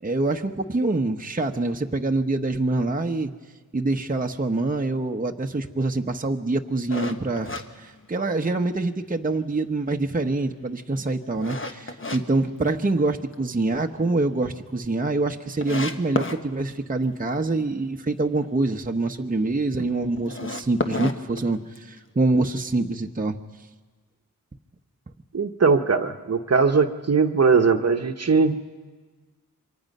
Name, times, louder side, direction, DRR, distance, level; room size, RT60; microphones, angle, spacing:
voice 1, 0.0-3.3 3.7-23.4, right 2 dB, 25° right, 3 dB, 1.0 m, -25 dB
sound 1, 6.9-8.6 9.0-9.1 9.7-12.2 12.6-13.3 13.7-13.8 14.2-14.3 14.4-14.5 15.1-15.2 15.6-16.4 20.2-22.0, left 3 dB, 35° left, 1.3 m, -31 dB
voice 2, 25.3-28.6, right 4 dB, 45° right, 7 dB, 1.1 m, -20 dB
28.0 x 24.0 x 5.5 m, 1.4 s
cardioid pair, 70°, 35 cm